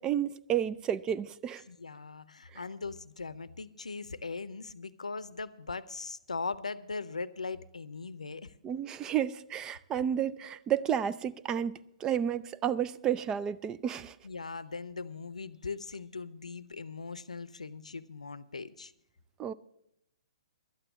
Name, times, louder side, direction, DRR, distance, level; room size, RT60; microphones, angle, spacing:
voice 1, 0.0-1.6 2.5-2.6 8.6-14.2 19.4-19.5, right 9 dB, 20° right, 0.4 m, -31 dB
voice 2, 1.7-8.5 14.2-18.9, left 4 dB, 85° left, 0.6 m, -40 dB
12.0 x 8.9 x 7.2 m
hypercardioid pair, 130°, 4 cm